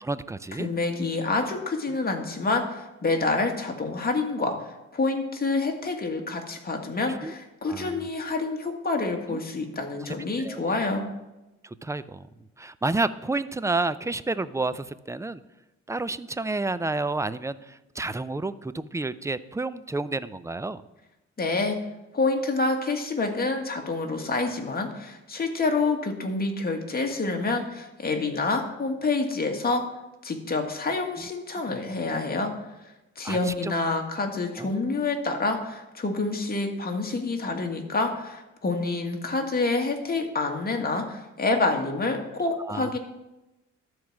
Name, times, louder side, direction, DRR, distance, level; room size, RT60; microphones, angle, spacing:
voice 1, 0.0-0.7 2.0-2.2 7.1-7.3 7.7-8.1 9.3-9.4 10.2-10.6 11.6-12.3 12.6-15.4 15.9-20.8 31.2-31.3 31.7-31.8 33.2-33.7 34.6-34.7 42.6-43.0, right 2 dB, 10° right, 15 dB, 0.4 m, -30 dB
voice 2, 0.6-11.0 21.4-21.8 22.1-29.8 30.2-32.5 33.2-43.0, left 3 dB, 30° left, 3 dB, 1.9 m, -27 dB
12.5 x 4.7 x 7.4 m, 0.97 s
cardioid pair, 90°, 30 cm